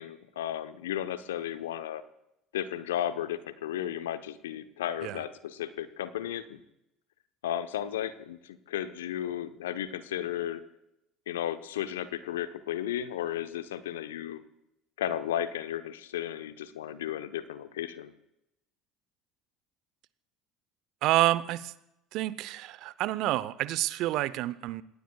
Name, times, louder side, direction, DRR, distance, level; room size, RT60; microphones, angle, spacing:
voice 1, 0.0-2.0 2.5-6.6 7.4-10.6 11.3-14.4 15.0-18.1, left 11 dB, 75° left, 11 dB, 0.9 m, -34 dB
voice 2, 21.0-21.7 22.1-24.8, right 15 dB, 55° right, 17 dB, 0.7 m, -28 dB
27.5 x 19.5 x 2.4 m, 0.85 s
figure-of-eight pair, 65°, 0 cm